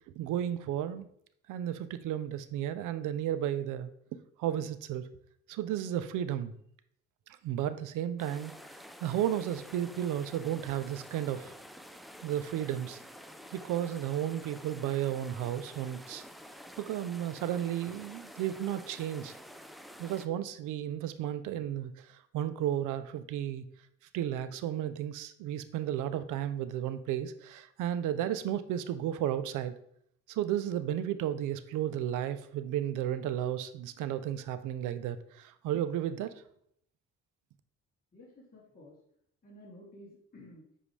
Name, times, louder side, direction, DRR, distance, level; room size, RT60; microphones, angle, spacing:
voice 1, 0.2-1.1 1.5-3.9 4.4-5.1 5.5-6.5 7.4-8.5 9.0-11.5 12.2-13.0 13.5-16.2 16.8-19.3 20.0-23.6 24.1-29.7 30.3-36.3, right 11 dB, 90° right, 12 dB, 0.6 m, -33 dB
sound 1, 8.2-20.3, equal, ahead, 0.5 m, -49 dB
voice 2, 38.1-39.0 39.4-40.6, left 1 dB, 30° left, -7 dB, 2.7 m, -52 dB
7.6 x 5.0 x 3.2 m, 0.70 s
cardioid pair, 90°, 30 cm